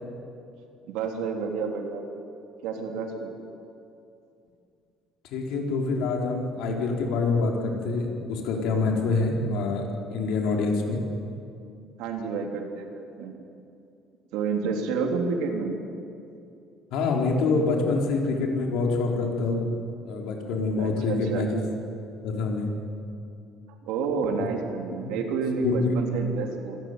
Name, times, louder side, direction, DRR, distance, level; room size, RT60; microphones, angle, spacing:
voice 1, 0.9-2.0 2.6-3.3 12.0-13.3 14.3-15.8 20.8-21.5 23.8-26.8, right 5 dB, 85° right, 2 dB, 3.5 m, -29 dB
voice 2, 5.3-11.0 16.9-19.7 20.0-21.6 22.2-22.7 24.4-24.5 25.0-25.2 25.6-25.9, left 3 dB, 70° left, 1 dB, 4.2 m, -26 dB
27.0 x 14.5 x 9.8 m, 2.6 s
cardioid pair, 165°, 0 cm